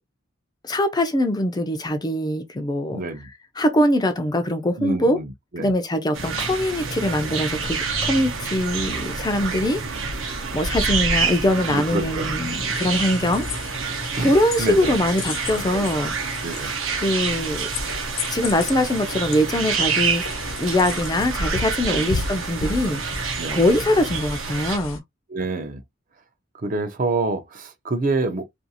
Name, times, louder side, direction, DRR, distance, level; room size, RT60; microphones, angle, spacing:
voice 1, 0.6-3.0 3.6-5.2 5.6-9.8 10.5-13.5 14.2-16.1 16.6-17.7 18.3-20.3 20.6-23.0 23.5-25.0, left 1 dB, 20° left, 0.4 m, -22 dB
voice 2, 2.9-3.3 4.8-5.7 11.7-12.3 14.2-14.3 14.6-14.9 15.7-15.9 16.4-16.7 21.8-22.2 23.4-23.7 25.3-25.8 26.5-28.5, right 3 dB, 40° right, 0.5 m, -27 dB
sound 1, 6.1-24.8, right 5 dB, 75° right, 0.8 m, -28 dB
sound 2, 12.7-25.0, left 3 dB, 90° left, 0.9 m, -34 dB
2.5 x 2.4 x 2.7 m
head